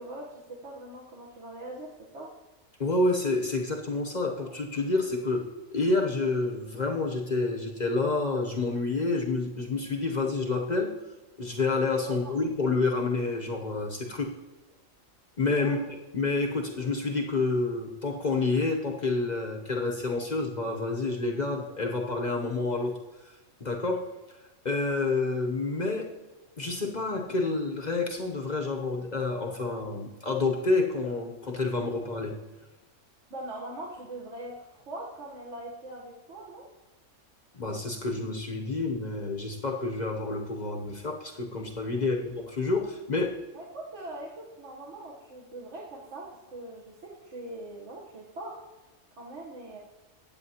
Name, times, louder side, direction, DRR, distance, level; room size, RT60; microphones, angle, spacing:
voice 1, 0.0-2.3 12.0-12.3 15.6-15.8 33.3-36.6 42.0-42.2 43.5-44.3 44.6-46.9 47.2-48.6 49.2-49.8, right 1 dB, 60° right, -4 dB, 1.5 m, -41 dB
voice 2, 2.8-5.4 5.7-10.9 11.4-14.3 15.4-15.8 16.1-23.0 23.2-23.3 23.6-24.0 24.6-26.1 26.6-32.3 37.5-43.4, left 3 dB, 40° left, 1 dB, 0.8 m, -28 dB
15.0 x 8.7 x 2.9 m, 1.1 s
omnidirectional pair, 1.4 m